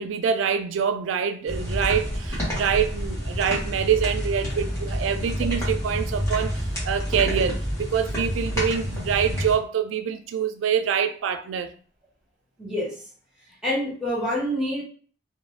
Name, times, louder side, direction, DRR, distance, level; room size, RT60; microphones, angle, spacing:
voice 1, 0.0-11.7, right 7 dB, 90° right, 0.3 m, -25 dB
sound 1, 1.5-9.6, equal, 15° left, 1.1 m, -28 dB
voice 2, 12.6-12.9 13.6-14.8, equal, 5° right, 1.3 m, -26 dB
2.4 x 2.0 x 3.2 m
head